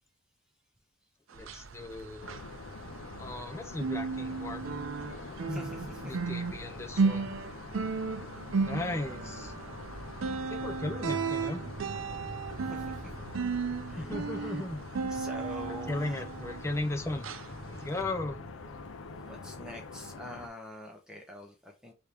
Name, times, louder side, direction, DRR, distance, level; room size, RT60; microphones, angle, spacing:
voice 1, 1.3-2.3 3.2-4.7 5.5-7.4 8.6-9.5 10.5-11.6 14.0-14.8 15.7-17.3 17.7-18.4, left 2 dB, 15° left, 0.5 m, -36 dB
sound 1, 1.3-20.3, right 1 dB, 55° right, 1.1 m, -48 dB
sound 2, 1.3-3.5 3.7-16.9 17.2-17.5 18.0-18.1, right 5 dB, 80° right, 0.5 m, -34 dB
sound 3, 2.2-20.5, left 4 dB, 80° left, 0.6 m, -46 dB
voice 2, 5.5-6.1 7.0-7.1 12.7-12.8 13.9-14.1 14.4-14.6 15.1-16.2 19.1-21.9, left 1 dB, 5° right, 1.0 m, -45 dB
4.8 x 2.9 x 3.4 m
head